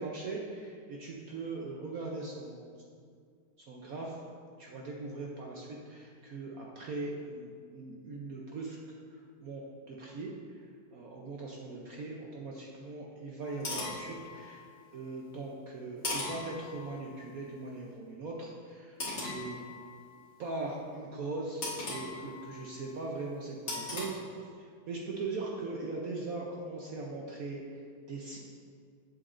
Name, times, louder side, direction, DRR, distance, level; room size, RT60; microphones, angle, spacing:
voice 1, 0.0-2.7 3.7-4.2 4.6-8.8 9.1-9.6 9.9-19.6 20.4-28.4, right 3 dB, 65° right, -2 dB, 0.9 m, -40 dB
sound 1, 13.4-14.9 16.0-17.3 19.0-20.2 21.6-22.9 23.7-24.0, left 2 dB, 35° left, 1.8 m, -39 dB
7.9 x 7.7 x 2.6 m, 2.1 s
omnidirectional pair, 2.3 m